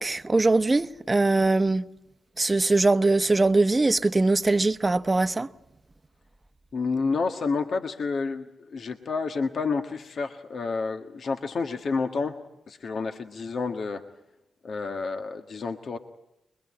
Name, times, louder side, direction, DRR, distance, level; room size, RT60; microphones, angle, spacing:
voice 1, 0.0-1.9 2.4-5.5, right 2 dB, 25° right, 1.0 m, -22 dB
voice 2, 6.7-12.4 12.7-14.0 14.6-16.0, left 4 dB, 60° left, 1.5 m, -29 dB
24.5 x 22.0 x 8.7 m
cardioid pair, 60°, 0 cm